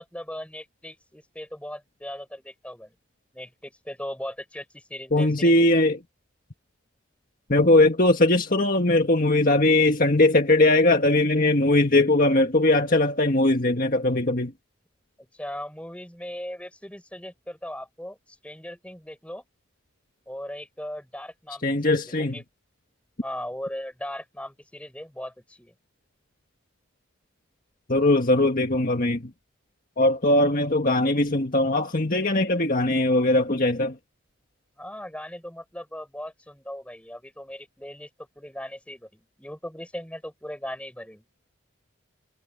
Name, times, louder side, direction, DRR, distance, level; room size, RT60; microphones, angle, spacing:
voice 1, 0.0-2.9 3.3-5.7 15.3-19.4 20.3-21.6 21.9-22.4 23.2-25.7 34.8-41.2, left 1 dB, 5° left, 6.2 m, -38 dB
voice 2, 5.1-6.0 7.5-14.5 21.6-22.3 27.9-29.2 30.0-33.9, left 2 dB, 45° left, 1.7 m, -20 dB
head